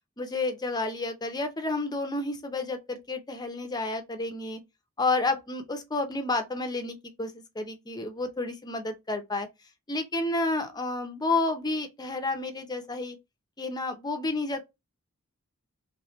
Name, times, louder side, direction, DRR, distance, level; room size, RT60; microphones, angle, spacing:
voice 1, 0.2-4.6 5.0-9.5 9.9-13.2 13.6-14.6, left 2 dB, 20° left, 0.6 m, -30 dB
3.2 x 3.2 x 3.0 m
head